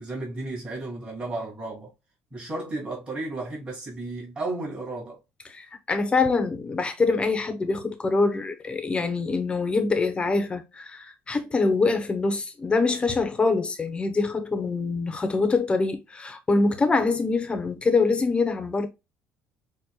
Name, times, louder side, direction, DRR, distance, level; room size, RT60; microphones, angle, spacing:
voice 1, 0.0-1.9 2.3-5.2, right 2 dB, 20° right, 2.7 m, -33 dB
voice 2, 5.5-18.9, left 3 dB, 25° left, 1.0 m, -24 dB
6.2 x 2.5 x 2.3 m
cardioid pair, 110°, 5 cm